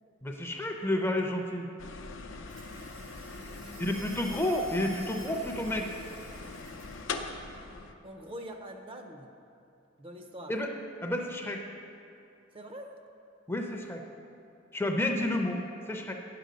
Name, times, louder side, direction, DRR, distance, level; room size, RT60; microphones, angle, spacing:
voice 1, 0.2-1.7 3.8-5.9 10.5-10.7 11.0-11.6 13.5-14.0 14.7-15.6 15.9-16.1, left 1 dB, 10° left, 3 dB, 0.6 m, -30 dB
sound 1, 1.8-7.9, left 3 dB, 70° left, 0.6 m, -42 dB
sound 2, 2.5-7.1, right 2 dB, 85° right, 1.6 m, -51 dB
voice 2, 3.2-4.0 8.0-9.3 10.0-10.5 12.5-12.9, equal, 25° right, 4 dB, 0.6 m, -44 dB
9.6 x 6.7 x 5.1 m, 2.6 s
head